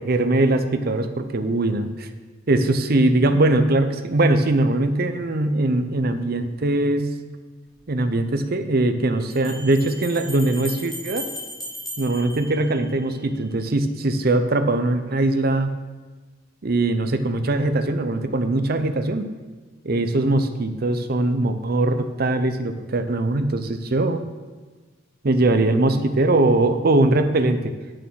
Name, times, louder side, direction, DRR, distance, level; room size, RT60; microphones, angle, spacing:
voice 1, 0.0-2.1 2.5-7.1 7.9-11.3 12.0-15.7 16.6-19.3 19.8-24.2 25.2-27.7, right 2 dB, 50° right, 9 dB, 0.7 m, -21 dB
sound 1, 7.7-7.8 9.3-13.3, equal, ahead, 2.1 m, -36 dB
8.8 x 6.3 x 6.3 m, 1.4 s
head